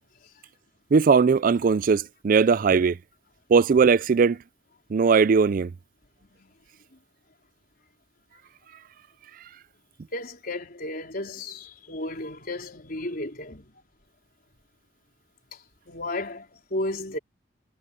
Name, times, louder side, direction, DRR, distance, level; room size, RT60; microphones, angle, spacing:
voice 1, 0.9-3.0 3.5-4.4 4.9-5.7, right 5 dB, 50° right, 0.4 m, -19 dB
voice 2, 10.1-13.7 15.5-17.2, left 1 dB, 55° left, 4.3 m, -34 dB
head